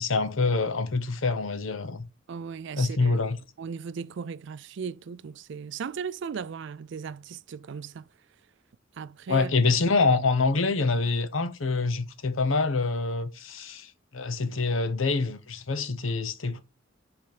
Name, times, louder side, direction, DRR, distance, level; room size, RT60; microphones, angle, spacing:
voice 1, 0.0-2.1 2.8-3.4 9.3-16.6, left 3 dB, 85° left, 0.9 m, -26 dB
voice 2, 2.3-3.2 3.6-8.0 9.0-9.5, right 6 dB, 65° right, 0.4 m, -37 dB
5.4 x 4.5 x 5.1 m
head